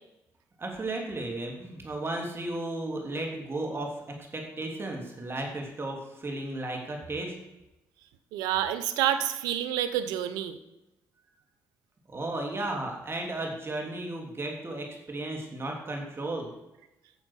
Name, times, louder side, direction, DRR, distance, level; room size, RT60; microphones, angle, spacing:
voice 1, 0.6-7.4 12.1-16.5, right 2 dB, 35° right, 1 dB, 3.3 m, -34 dB
voice 2, 8.3-10.6, right 11 dB, 90° right, 11 dB, 0.8 m, -28 dB
9.5 x 7.2 x 6.4 m, 0.92 s
supercardioid pair, 55°, 7 cm